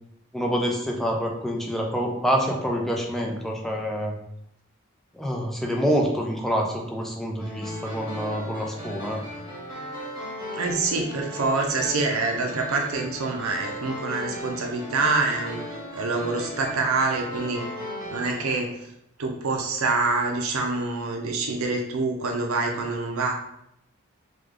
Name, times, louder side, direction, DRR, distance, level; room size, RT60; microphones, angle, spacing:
voice 1, 0.3-4.2 5.1-9.2, equal, ahead, -1 dB, 0.5 m, -26 dB
sound 1, 7.4-18.5, equal, 15° right, 1.4 m, -37 dB
voice 2, 10.6-15.6 16.0-17.6 18.1-18.7 19.2-23.3, right 3 dB, 85° right, 2 dB, 0.5 m, -26 dB
3.2 x 2.3 x 3.7 m, 0.77 s
head